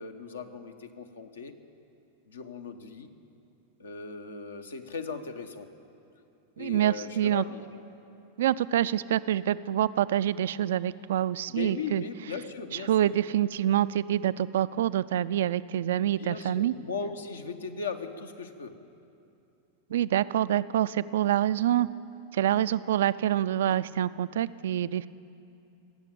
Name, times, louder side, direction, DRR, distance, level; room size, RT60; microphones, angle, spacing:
voice 1, 0.0-1.6 2.3-3.1 3.8-5.7 6.6-7.6 11.5-13.2 16.2-18.8, left 5 dB, 70° left, 7 dB, 1.0 m, -38 dB
voice 2, 6.6-7.4 8.4-12.0 12.9-16.7 19.9-21.9 22.3-25.1, right 11 dB, 60° right, 17 dB, 0.3 m, -26 dB
18.5 x 8.1 x 9.0 m, 2.6 s
figure-of-eight pair, 90°, 0 cm